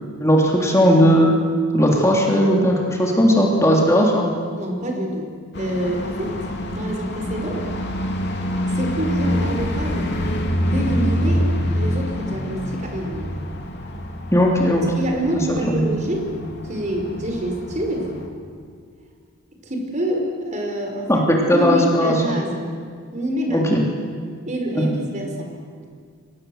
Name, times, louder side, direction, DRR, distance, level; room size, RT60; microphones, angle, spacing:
voice 1, 0.2-1.3 1.7-4.3 14.3-14.8 15.3-15.9 21.1-21.2 21.5-22.4 23.5-23.8 24.7-24.9, equal, 15° left, -1 dB, 3.2 m, -17 dB
voice 2, 4.6-5.3 5.6-6.4 6.7-7.7 8.7-10.2 10.6-13.4 15.0-16.3 16.6-18.2 19.6-22.7 23.1-23.7 24.5-25.5, equal, 35° right, 2 dB, 5.0 m, -26 dB
sound 1, 5.5-18.3, equal, 55° left, 3.3 m, -26 dB
30.0 x 25.0 x 8.0 m, 2.1 s
head